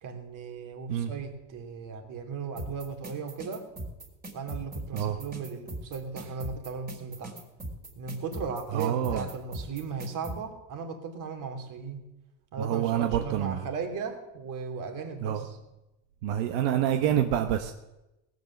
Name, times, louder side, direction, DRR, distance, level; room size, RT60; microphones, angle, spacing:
voice 1, 0.0-3.6 4.3-7.4 7.9-12.0 12.5-15.6, right 5 dB, 55° right, 5 dB, 2.7 m, -37 dB
sound 1, 2.6-10.4, right 1 dB, 20° right, 3.4 m, -39 dB
voice 2, 8.7-9.3 12.6-13.6 15.2-15.4 16.2-17.7, right 10 dB, 85° right, 6 dB, 1.1 m, -27 dB
18.5 x 8.2 x 7.1 m, 0.95 s
cardioid pair, 130°, 39 cm